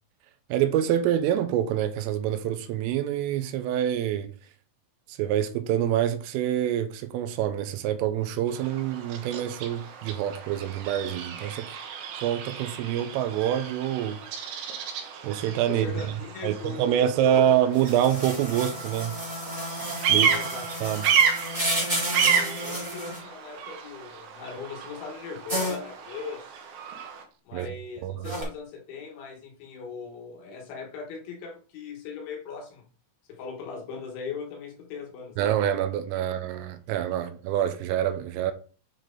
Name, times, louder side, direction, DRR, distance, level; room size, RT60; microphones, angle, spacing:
voice 1, 0.5-4.3 5.1-11.7 12.2-14.2 15.2-15.9 16.4-19.2 20.1-20.4 20.8-21.1 27.5-27.7 28.0-28.3 35.4-38.5, right 10 dB, 90° right, 3.2 m, -26 dB
Bird vocalization bird call bird song, 8.5-27.2, right 7 dB, 70° right, 2.9 m, -31 dB
voice 2, 15.7-17.5 20.2-20.7 22.2-26.4 27.4-32.8 33.3-35.4, left 5 dB, 70° left, 3.5 m, -39 dB
sound 1, 17.7-23.2 25.5-25.8 28.2-28.4, equal, 15° right, 1.1 m, -31 dB
9.3 x 4.4 x 3.8 m
omnidirectional pair, 5.8 m